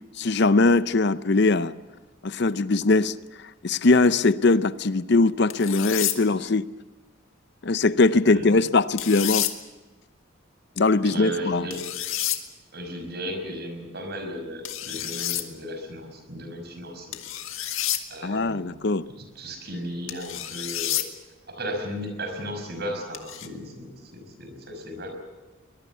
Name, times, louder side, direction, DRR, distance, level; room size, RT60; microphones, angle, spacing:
voice 1, 0.2-1.8 2.2-3.2 3.6-6.7 7.6-9.5 10.8-11.7 18.2-19.1, left 3 dB, 55° left, 14 dB, 0.6 m, -21 dB
sound 1, 5.5-6.2 9.0-9.5 11.7-12.4 14.6-15.4 17.1-18.0 20.1-21.1 23.1-23.5, left 12 dB, 80° left, 1.8 m, -29 dB
voice 2, 8.3-8.6 11.0-11.8 12.7-17.2 18.1-18.8 19.2-21.0 21.5-25.1, equal, 50° right, 5 dB, 5.9 m, -35 dB
23.0 x 21.5 x 7.3 m, 1.2 s
head